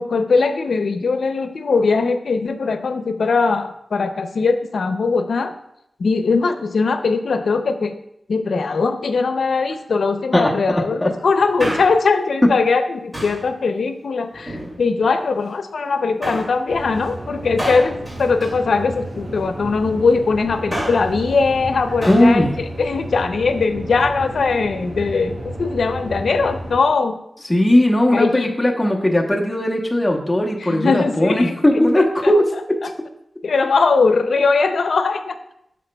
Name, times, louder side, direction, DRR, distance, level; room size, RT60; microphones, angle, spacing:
voice 1, 0.0-5.5 6.0-7.9 8.3-27.2 28.1-28.5 30.6-31.5 32.0-32.3 32.8-32.9 33.4-35.4, left 4 dB, 85° left, 9 dB, 0.5 m, -20 dB
Male speech man speaking, 11.4-12.2 13.1-13.5 14.3-15.1 16.2-16.6 17.6-19.2 20.5-21.1 22.0-22.3 22.6-22.7, equal, 20° right, 2.4 m, -29 dB
sound 1, 16.7-26.8, right 1 dB, 65° right, 2.1 m, -32 dB
voice 2, 22.1-22.6 27.5-32.5, left 1 dB, 10° left, -1 dB, 0.9 m, -17 dB
9.0 x 6.2 x 2.3 m, 0.78 s
wide cardioid pair, 90°, 0 cm